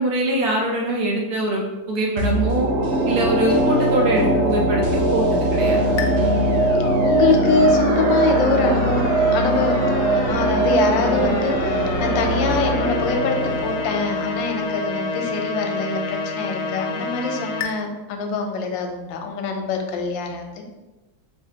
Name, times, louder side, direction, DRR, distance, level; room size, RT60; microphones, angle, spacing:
voice 1, 0.0-2.7 3.1-5.8, right 1 dB, 65° right, -1 dB, 1.1 m, -23 dB
sound 1, 2.2-15.3 15.6-15.7, right 1 dB, 85° right, 0.6 m, -21 dB
sound 2, 6.0-17.7, left 3 dB, 70° left, 1.0 m, -29 dB
voice 2, 7.0-13.4 13.6-20.6, left 4 dB, 90° left, 4 dB, 1.3 m, -24 dB
3.9 x 3.3 x 2.8 m, 1.1 s
omnidirectional pair, 2.0 m